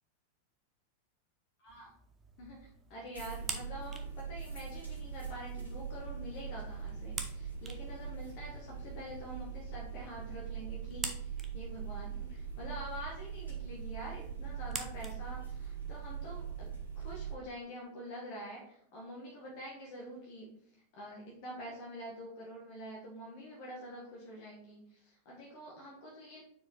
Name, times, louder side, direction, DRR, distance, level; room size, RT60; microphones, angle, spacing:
sound 1, 1.7-17.0, right 4 dB, 20° right, 0.7 m, -49 dB
voice 1, 2.4-20.5 20.9-26.4, equal, 45° left, -2 dB, 1.5 m, -46 dB
sound 2, 3.1-17.3, right 7 dB, 85° left, 1.9 m, -42 dB
4.6 x 4.6 x 4.4 m, 0.66 s
figure-of-eight pair, 90°, 0 cm